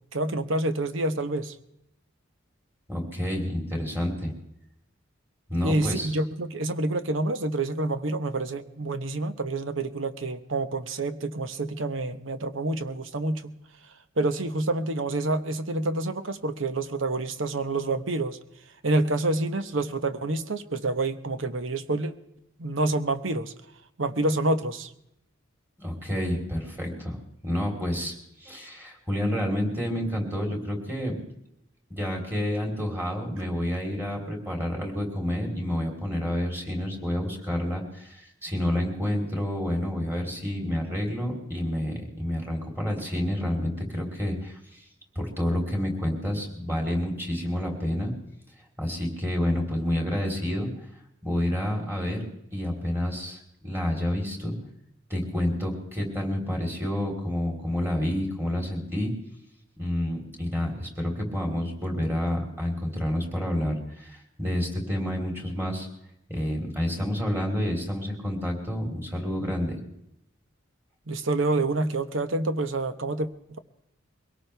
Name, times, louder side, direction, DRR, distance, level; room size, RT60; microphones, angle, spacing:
voice 1, 0.1-1.5 5.6-13.6 14.2-18.4 18.8-22.1 22.6-23.5 24.0-24.9 71.1-73.6, right 2 dB, 70° right, 10 dB, 1.0 m, -28 dB
voice 2, 2.9-4.3 5.5-6.2 25.8-27.2 27.4-31.1 31.9-44.8 45.2-48.1 48.8-50.7 51.2-54.5 55.1-59.1 59.8-65.9 66.3-69.8, left 1 dB, 10° right, 0 dB, 3.6 m, -29 dB
23.0 x 18.0 x 3.4 m, 0.80 s
head